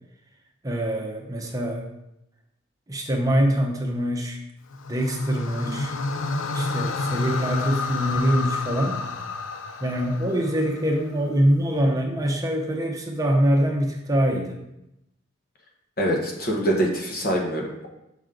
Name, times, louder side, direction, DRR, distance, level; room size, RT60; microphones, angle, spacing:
voice 1, 0.6-1.9 2.9-4.4 4.9-5.9 6.5-9.0 9.8-14.6, equal, 15° right, 1 dB, 0.8 m, -24 dB
sound 1, 4.7-11.0, left 3 dB, 75° left, 0.5 m, -29 dB
voice 2, 16.0-17.9, right 1 dB, 50° left, 0 dB, 1.3 m, -24 dB
6.1 x 5.5 x 3.8 m, 0.86 s
head